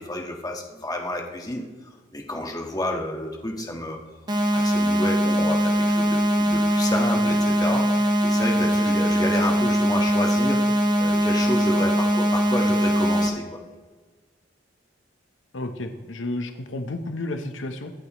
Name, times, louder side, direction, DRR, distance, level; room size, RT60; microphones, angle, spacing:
voice 1, 0.0-1.6 2.1-4.0 4.5-13.6, left 1 dB, 20° left, 1 dB, 1.5 m, -30 dB
sound 1, 4.3-13.3, equal, 25° right, 1.3 m, -21 dB
voice 2, 15.5-17.9, left 2 dB, 75° left, 7 dB, 0.9 m, -31 dB
23.5 x 8.3 x 3.1 m, 1.4 s
head